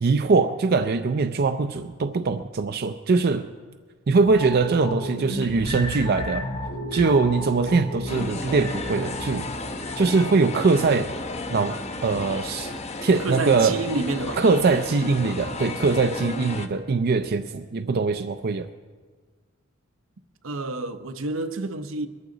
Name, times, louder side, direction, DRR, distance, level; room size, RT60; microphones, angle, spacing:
voice 1, 0.0-3.5 4.1-6.5 6.9-9.5 10.0-11.1 11.5-11.8 12.0-12.7 13.0-13.8 14.4-18.7, right 4 dB, 50° right, 0.4 m, -22 dB
sound 1, 4.2-13.6 13.9-14.0, left 1 dB, 70° left, 4.2 m, -34 dB
sound 2, 8.1-16.7, left 2 dB, 35° left, 0.8 m, -34 dB
voice 2, 13.2-14.4 20.4-22.1, right 2 dB, 80° right, 0.9 m, -29 dB
21.0 x 13.5 x 3.9 m
head